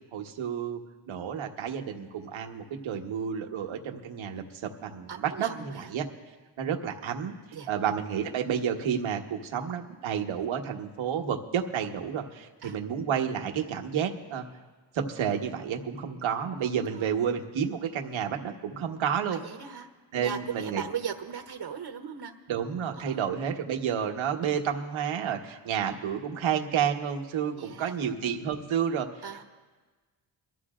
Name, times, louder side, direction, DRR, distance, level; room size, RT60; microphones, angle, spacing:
voice 1, 0.1-0.8 1.1-6.0 6.6-7.3 7.7-14.4 14.9-19.4 20.1-20.8 22.5-29.1, right 8 dB, 85° right, 3 dB, 1.3 m, -30 dB
voice 2, 5.1-5.9 7.5-7.7 12.6-12.8 16.6-17.1 19.3-19.9 20.1-22.3 23.0-23.2 27.6-27.9 29.2-29.4, right 7 dB, 60° right, 4 dB, 1.2 m, -38 dB
23.5 x 14.0 x 2.5 m, 1.3 s
cardioid pair, 60°, 46 cm